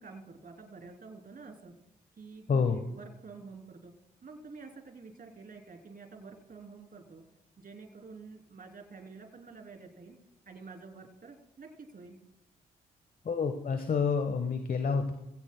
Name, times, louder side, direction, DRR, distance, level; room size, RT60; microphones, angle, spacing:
voice 1, 0.0-1.7 2.2-3.9 4.2-7.2 7.6-10.2 10.4-12.2, right 4 dB, 45° right, 3 dB, 3.1 m, -49 dB
voice 2, 2.5-2.8 13.2-15.1, left 5 dB, 45° left, 7 dB, 1.2 m, -28 dB
19.5 x 16.5 x 2.2 m, 0.96 s
hypercardioid pair, 40°, 20 cm